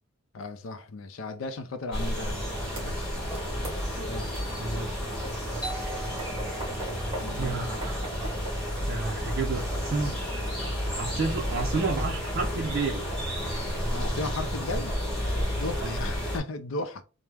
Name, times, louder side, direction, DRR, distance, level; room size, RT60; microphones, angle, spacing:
voice 1, 0.3-3.1 3.9-4.3 6.4-6.7 7.2-7.7 13.9-15.0 15.5-17.0, left 3 dB, 85° left, 0.4 m, -36 dB
sound 1, 1.9-16.4, equal, 5° left, 1.5 m, -31 dB
sound 2, 2.8-2.9 3.3-3.8 4.5-4.6 5.2-8.8, right 1 dB, 30° right, 1.3 m, -38 dB
voice 2, 4.6-5.0 7.4-8.1 8.8-10.1 10.9-13.0 15.8-16.0, right 3 dB, 50° right, 0.5 m, -31 dB
Doorbell, 5.6-11.0, right 2 dB, 20° left, 1.1 m, -45 dB
3.4 x 2.0 x 3.3 m
head